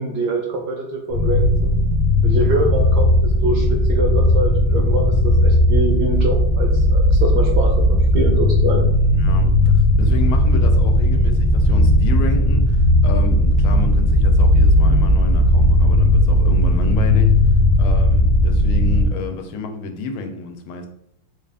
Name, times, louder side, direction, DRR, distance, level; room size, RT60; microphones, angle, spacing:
voice 1, 0.0-1.7 2.2-8.9, right 2 dB, 70° right, 1 dB, 1.0 m, -24 dB
sound 1, 1.1-19.0, left 1 dB, 55° left, 1.0 m, -16 dB
voice 2, 9.0-17.4 17.8-20.9, left 4 dB, 85° left, 5 dB, 1.4 m, -30 dB
3.8 x 2.4 x 3.4 m, 0.77 s
omnidirectional pair, 2.2 m